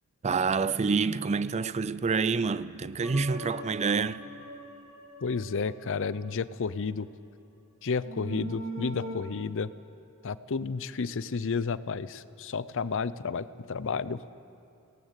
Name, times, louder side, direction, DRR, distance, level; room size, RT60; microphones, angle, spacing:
voice 1, 0.2-4.2, right 5 dB, 30° right, 0.4 m, -27 dB
sound 1, 3.0-6.4 8.0-9.2, right 1 dB, 65° right, 3.1 m, -41 dB
voice 2, 5.2-7.1 7.8-9.7 10.2-14.2, left 5 dB, 60° left, 0.6 m, -31 dB
18.5 x 18.5 x 8.2 m
head